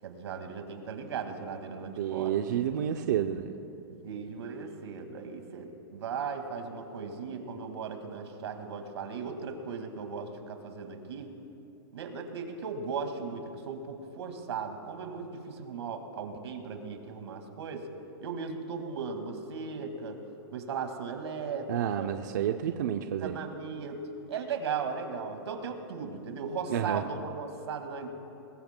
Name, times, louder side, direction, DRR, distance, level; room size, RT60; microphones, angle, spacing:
voice 1, 0.0-2.4 3.9-11.3 11.9-17.9 18.2-20.2 20.5-22.1 22.9-24.0 24.3-28.1, right 5 dB, 80° right, 5 dB, 2.0 m, -37 dB
voice 2, 1.8-3.5 21.7-23.4 26.7-27.0, right 10 dB, 45° right, 6 dB, 0.5 m, -30 dB
21.5 x 20.0 x 2.2 m, 2.9 s
supercardioid pair, 180°, 14 cm